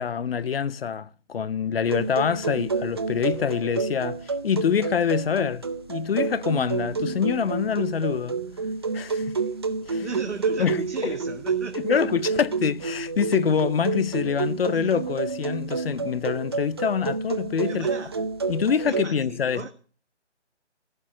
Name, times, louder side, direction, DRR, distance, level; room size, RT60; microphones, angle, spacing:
voice 1, 0.0-8.4 8.9-9.4 9.9-10.0 10.6-11.1 11.7-17.9 18.5-19.6, left 7 dB, 55° left, 0.8 m, -25 dB
sound 1, 1.8-19.1, right 4 dB, 25° right, 0.6 m, -29 dB
voice 2, 10.0-12.0 14.7-14.9 17.6-18.2 18.9-19.7, right 4 dB, 80° right, 1.7 m, -36 dB
15.5 x 7.4 x 6.3 m
figure-of-eight pair, 155°, 35 cm